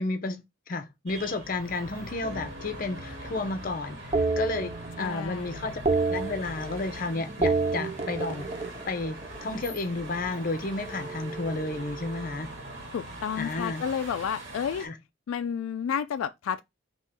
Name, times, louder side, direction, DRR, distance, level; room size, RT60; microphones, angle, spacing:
voice 1, 0.0-8.5 8.9-12.5 13.4-13.8 14.8-14.9, left 3 dB, 45° left, 0.6 m, -32 dB
sound 1, 1.1-14.9, right 1 dB, 70° right, 1.8 m, -42 dB
sound 2, 2.2-3.5 4.1-5.3 5.6-7.0 7.3-9.6 10.8-12.6, right 3 dB, 30° right, 0.4 m, -31 dB
voice 2, 5.0-5.7 12.9-14.9 15.3-16.6, left 7 dB, 85° left, 0.3 m, -31 dB
3.6 x 2.9 x 4.2 m
head